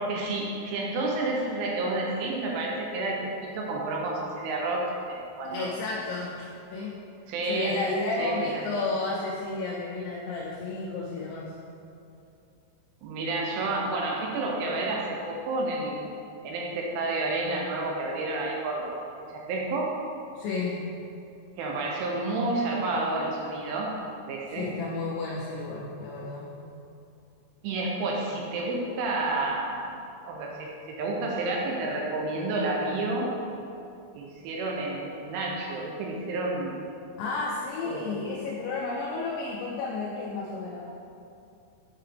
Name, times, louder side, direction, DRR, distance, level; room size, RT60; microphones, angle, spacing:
voice 1, 0.0-5.8 7.3-7.8 8.2-8.6 13.0-16.0 16.4-18.8 19.3-20.0 21.6-23.9 24.3-24.7 27.6-29.9 30.3-33.3 34.2-36.8 37.8-38.2, right 2 dB, 80° right, -1 dB, 2.9 m, -30 dB
voice 2, 5.5-7.0 7.4-11.5 20.4-20.8 24.5-26.5 37.2-40.9, left 3 dB, 80° left, -5 dB, 2.7 m, -32 dB
8.5 x 5.7 x 3.3 m, 2.6 s
omnidirectional pair, 5.9 m